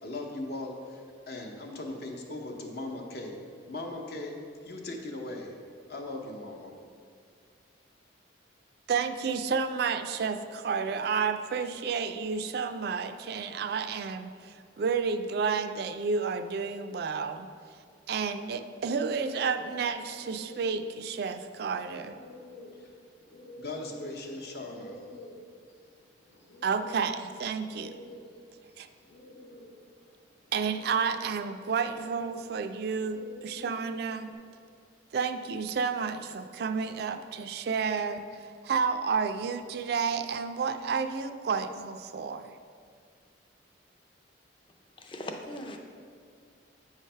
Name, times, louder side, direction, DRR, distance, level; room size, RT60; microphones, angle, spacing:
voice 1, 0.0-3.4 3.7-4.4 4.6-5.5 5.9-6.8 22.8-22.9 23.6-25.0, left 2 dB, 55° left, 2 dB, 0.8 m, -39 dB
voice 2, 8.9-17.5 18.1-22.2 26.6-28.0 28.8-28.9 30.5-34.3 35.1-38.2 38.6-42.5, right 5 dB, 55° right, 9 dB, 0.3 m, -31 dB
sound 1, 19.4-34.3, equal, 80° left, 1.3 m, -50 dB
voice 3, 45.0-45.8, left 1 dB, 25° left, 3 dB, 0.5 m, -39 dB
8.3 x 3.2 x 5.5 m, 2.2 s
head